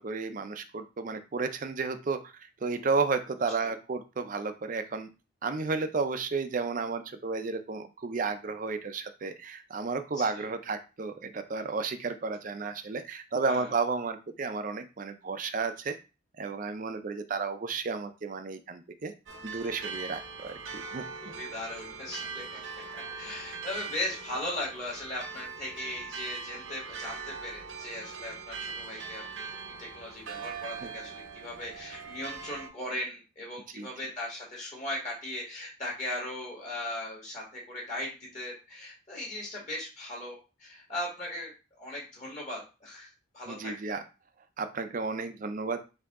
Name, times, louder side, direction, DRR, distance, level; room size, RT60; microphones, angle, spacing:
voice 1, 0.0-5.1 5.4-16.0 16.4-19.1 19.4-21.0 30.8-30.9 33.7-33.9 43.5-44.0 44.6-45.8, right 4 dB, 40° right, 9 dB, 0.4 m, -32 dB
voice 2, 10.2-10.5 13.5-13.7 21.2-22.6 22.9-29.5 29.8-43.1 43.3-44.0, left 1 dB, 35° left, -3 dB, 1.6 m, -38 dB
sound 1, 19.3-32.7, right 5 dB, 70° right, 0.7 m, -41 dB
4.6 x 2.8 x 3.5 m, 0.31 s
head